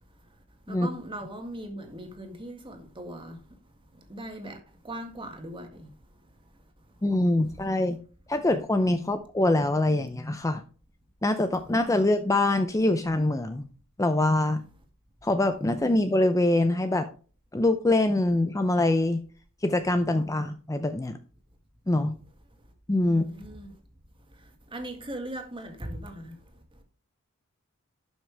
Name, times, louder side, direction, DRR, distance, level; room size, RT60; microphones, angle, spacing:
voice 1, 0.7-3.4 3.9-5.9 23.0-23.7 24.3-26.4, right 1 dB, 25° right, 1.9 m, -39 dB
voice 2, 7.0-8.0 8.3-10.6 11.2-13.7 14.0-14.6 15.2-17.1 17.5-19.2 19.6-21.2 21.9-22.1 22.9-23.2, left 2 dB, 15° left, 0.5 m, -24 dB
12.0 x 6.0 x 3.3 m
head